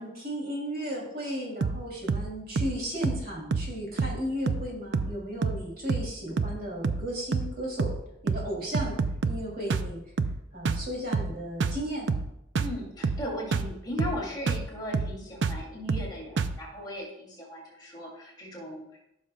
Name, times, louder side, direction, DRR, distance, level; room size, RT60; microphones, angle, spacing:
voice 1, 0.0-7.9 8.2-9.0 9.2-10.0 10.5-12.1, equal, 55° right, -3 dB, 2.9 m, -35 dB
sound 1, 1.6-1.8 2.1-2.3 2.6-2.8 3.0-3.3 3.5-3.7 4.0-4.2 4.5-4.7 4.9-5.2 5.4-5.6 5.9-6.1 6.4-6.6 6.8-7.1 7.3-7.5 7.8-8.0 8.3-8.5 8.7-9.4 9.7-9.9 10.2-10.4 10.7-10.9 11.1-11.3 11.6-11.8 12.1-12.3 12.6-12.8 13.0-13.3 13.5-13.7 14.0-14.2 14.5-14.7 14.9-15.2 15.4-15.6 15.9-16.1 16.4-16.6, right 4 dB, 70° right, 0.4 m, -28 dB
voice 2, 12.6-19.0, equal, 25° left, -5 dB, 2.7 m, -37 dB
14.5 x 6.3 x 2.3 m, 0.82 s
head